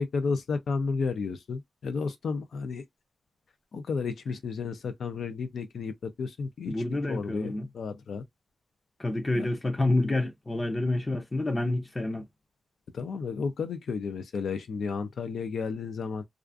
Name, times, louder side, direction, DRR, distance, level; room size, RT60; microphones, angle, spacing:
voice 1, 0.0-2.8 3.7-6.7 7.1-8.2 9.3-9.5 12.9-16.2, left 5 dB, 85° left, 0.4 m, -32 dB
voice 2, 6.7-7.7 9.0-12.2, left 2 dB, 20° left, 0.5 m, -28 dB
2.4 x 2.3 x 2.4 m
wide cardioid pair, 175°, 0 cm